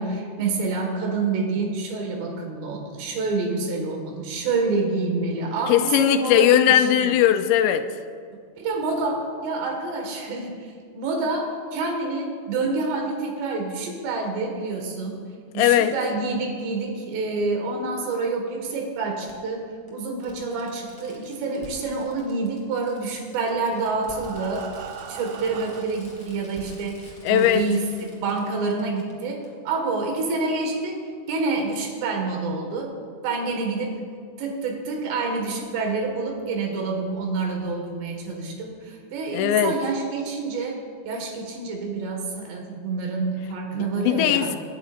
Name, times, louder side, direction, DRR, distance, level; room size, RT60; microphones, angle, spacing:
voice 1, 0.0-7.1 8.6-10.7 10.9-15.2 15.5-24.7 25.1-31.0 31.3-32.9 33.2-34.0 34.4-44.6, right 3 dB, 75° right, 2 dB, 3.9 m, -27 dB
voice 2, 5.7-7.9 15.6-16.0 27.2-27.6 39.3-39.8 43.7-44.6, left 11 dB, 80° left, 9 dB, 2.7 m, -19 dB
Fireworks, 19.3-19.4 19.9-20.0 20.2-29.1 29.4-29.5, right 1 dB, ahead, 2.0 m, -48 dB
Breathing, 23.2-26.2 26.9-27.0 27.4-27.5 27.9-28.0, right 7 dB, 90° right, 3.1 m, -40 dB
26.5 x 10.5 x 2.6 m, 2.1 s
omnidirectional pair, 5.1 m